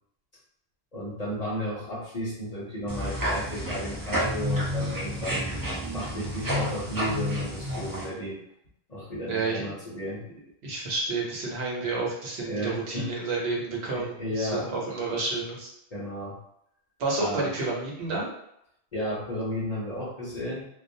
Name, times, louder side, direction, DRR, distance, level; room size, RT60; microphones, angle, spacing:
voice 1, 0.9-5.5 5.9-8.4 8.9-10.2 12.4-13.1 13.9-14.7 15.9-16.4 17.2-17.5 18.9-20.6, equal, 45° left, -6 dB, 0.7 m, -33 dB
sound 1, 2.9-8.1, equal, 35° right, 0.3 m, -30 dB
voice 2, 9.3-9.7 10.6-15.7 17.0-18.3, right 3 dB, 75° right, -3 dB, 1.0 m, -30 dB
2.3 x 2.0 x 2.6 m, 0.77 s
omnidirectional pair, 1.1 m